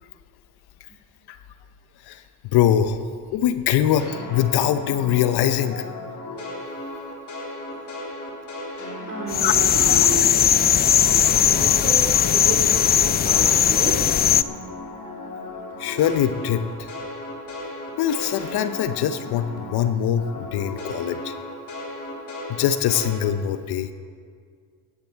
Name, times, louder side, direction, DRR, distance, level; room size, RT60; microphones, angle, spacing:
voice 1, 2.5-3.0 3.3-5.8 9.4-9.5 9.9-10.0 15.8-16.9 18.0-21.3 22.5-23.9, left 10 dB, 60° left, 11 dB, 0.8 m, -22 dB
Retro Synth Loop, 4.0-10.3 10.6-19.9 20.2-23.2, left 2 dB, 40° left, 3.6 m, -35 dB
voice 2, 9.0-10.4 11.4-14.1, right 3 dB, 30° right, -1 dB, 4.3 m, -31 dB
sound 1, 9.3-14.4, left 9 dB, 25° left, 0.3 m, -18 dB
16.5 x 10.5 x 4.5 m, 2.1 s
supercardioid pair, 70°, 44 cm